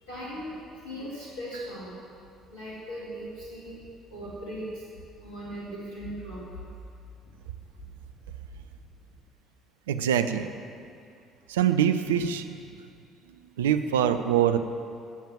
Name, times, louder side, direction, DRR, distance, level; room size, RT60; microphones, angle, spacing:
voice 1, 0.1-1.9 2.5-3.8 4.1-4.8 5.2-6.6 7.3-7.4, equal, 75° left, -8 dB, 2.3 m, -38 dB
voice 2, 9.9-10.5 11.5-12.6 13.6-14.6, right 9 dB, 70° right, 10 dB, 0.5 m, -24 dB
11.5 x 7.5 x 7.4 m, 2.4 s
figure-of-eight pair, 50°, 0 cm